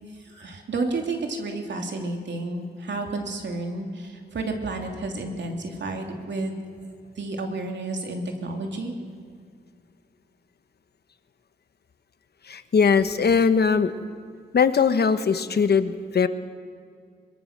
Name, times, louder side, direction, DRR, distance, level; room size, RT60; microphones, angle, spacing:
voice 1, 0.0-6.6 7.1-8.9, right 2 dB, 85° right, 3 dB, 3.0 m, -31 dB
voice 2, 12.4-13.9 14.5-16.3, left 6 dB, 65° left, 11 dB, 1.2 m, -20 dB
23.5 x 22.0 x 6.7 m, 2.1 s
cardioid pair, 80°, 18 cm